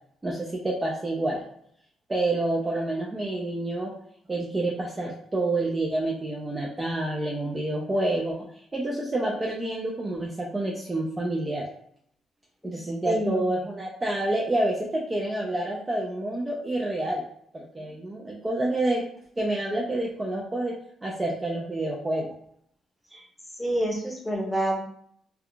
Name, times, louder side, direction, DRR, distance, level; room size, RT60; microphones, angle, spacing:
voice 1, 0.2-1.4 2.1-3.9 4.3-8.5 8.7-11.7 12.6-17.2 17.5-19.1 19.4-20.8 21.0-22.4, right 1 dB, 20° right, -3 dB, 0.5 m, -28 dB
voice 2, 12.6-13.5 23.1-23.2 23.6-24.8, right 1 dB, 5° left, -2 dB, 0.9 m, -28 dB
3.5 x 2.3 x 2.2 m, 0.67 s
cardioid pair, 90°, 0 cm